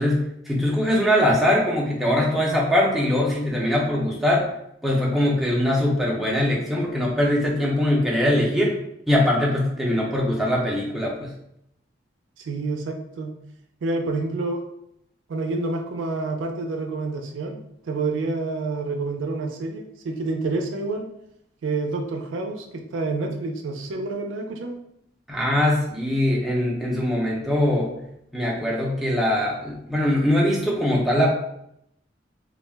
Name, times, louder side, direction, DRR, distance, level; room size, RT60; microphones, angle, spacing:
voice 1, 0.0-4.5 4.8-8.8 9.1-11.3 25.3-27.9 28.3-31.3, left 1 dB, ahead, -4 dB, 0.4 m, -22 dB
voice 2, 12.4-13.3 13.8-14.6 15.3-17.6 17.9-21.1 21.6-24.8, right 3 dB, 90° right, 3 dB, 0.4 m, -28 dB
2.3 x 2.1 x 3.3 m, 0.77 s
head